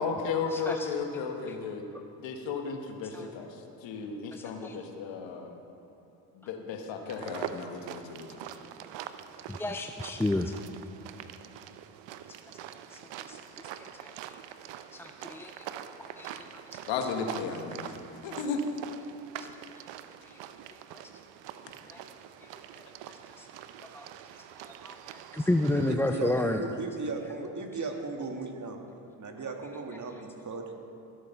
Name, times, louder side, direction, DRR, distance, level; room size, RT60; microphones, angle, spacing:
voice 1, 0.0-1.9 2.2-5.5 6.3-8.4 16.9-18.0 18.2-18.6, left 5 dB, 70° left, 4 dB, 1.5 m, -34 dB
voice 2, 0.5-0.9 1.5-1.6 3.1-3.3 4.3-4.8 9.5-10.5 12.9-13.0 13.3-13.7 14.0-14.1 14.9-15.5 16.2-16.8 19.4-19.5 20.3-20.4 20.9-21.0 21.9-22.0 23.4-23.5 23.9-24.1 24.6-26.6, left 2 dB, 5° left, 5 dB, 0.3 m, -31 dB
sound 1, 7.1-25.9, right 10 dB, 65° right, 0.7 m, -44 dB
voice 3, 25.7-28.8 29.2-30.7, right 3 dB, 40° right, 4 dB, 1.6 m, -36 dB
13.5 x 8.2 x 5.7 m, 2.9 s
hypercardioid pair, 55°, 47 cm